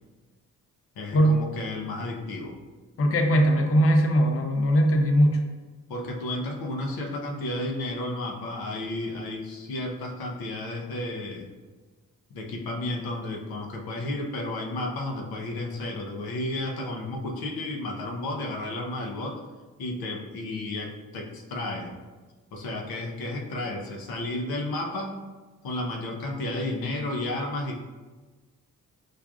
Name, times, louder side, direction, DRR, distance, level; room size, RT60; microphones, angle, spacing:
voice 1, 1.0-2.6 5.9-11.5 12.3-19.4 19.8-21.9 22.5-25.2 25.6-27.8, left 1 dB, 90° left, 1 dB, 0.6 m, -32 dB
voice 2, 3.0-5.4, equal, 40° left, 3 dB, 0.5 m, -20 dB
4.8 x 2.4 x 2.3 m, 1.3 s
cardioid pair, 60°, 35 cm